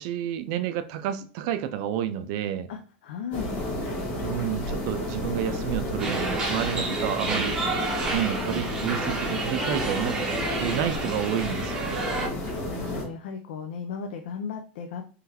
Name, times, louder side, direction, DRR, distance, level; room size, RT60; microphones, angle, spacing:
voice 1, 0.0-2.7 4.2-7.5 8.1-10.2 10.6-12.0, right 10 dB, 40° right, 0.4 m, -30 dB
voice 2, 2.7-3.5 12.2-12.3 12.7-15.0, left 6 dB, 80° left, 0.5 m, -36 dB
sound 1, 3.3-13.0, left 1 dB, 25° left, 1.3 m, -31 dB
sound 2, 6.0-12.3, right 3 dB, 10° right, 0.7 m, -30 dB
3.8 x 3.1 x 2.9 m
supercardioid pair, 175°, 5 cm